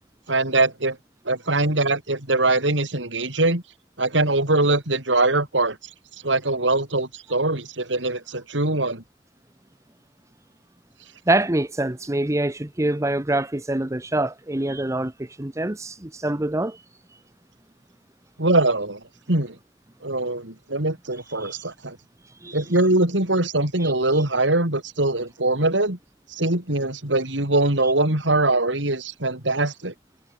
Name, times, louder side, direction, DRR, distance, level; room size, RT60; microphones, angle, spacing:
voice 1, 0.3-1.0 1.2-3.6 4.0-5.8 6.2-9.0 18.4-19.0 19.3-19.6 20.0-22.0 22.5-26.0 26.3-29.9, right 2 dB, 80° right, 4.5 m, -22 dB
voice 2, 11.3-16.8 21.4-21.5 22.4-22.6 23.8-23.9, right 1 dB, 15° right, 0.9 m, -25 dB
head